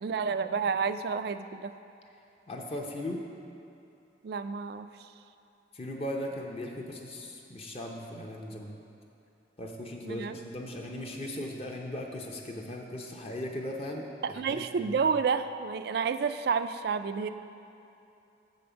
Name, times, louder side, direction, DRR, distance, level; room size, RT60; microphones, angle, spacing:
voice 1, 0.0-1.7 4.2-4.9 10.0-10.4 14.2-17.3, right 5 dB, 60° right, 11 dB, 0.3 m, -30 dB
voice 2, 2.5-3.2 5.7-8.8 9.6-15.1, left 1 dB, 35° left, 0 dB, 0.7 m, -38 dB
7.0 x 5.2 x 6.8 m, 2.8 s
head